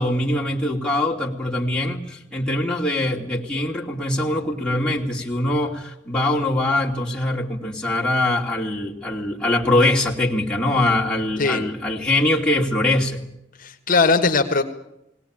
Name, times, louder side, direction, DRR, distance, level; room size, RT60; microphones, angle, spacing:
voice 1, 0.0-13.2, left 1 dB, 5° left, -3 dB, 2.7 m, -22 dB
voice 2, 13.6-14.6, left 4 dB, 50° left, 5 dB, 1.4 m, -19 dB
20.5 x 18.0 x 8.9 m, 0.82 s
head